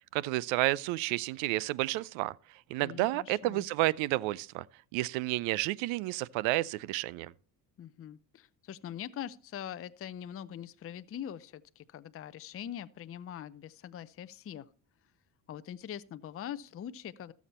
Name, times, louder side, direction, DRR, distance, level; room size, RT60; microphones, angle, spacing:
voice 1, 0.1-4.7 4.9-7.3, right 18 dB, 80° right, 0.6 m, -31 dB
voice 2, 2.8-3.7 7.8-14.7 15.5-17.3, left 10 dB, 30° left, 0.5 m, -43 dB
14.0 x 7.2 x 4.2 m
supercardioid pair, 80°, 46 cm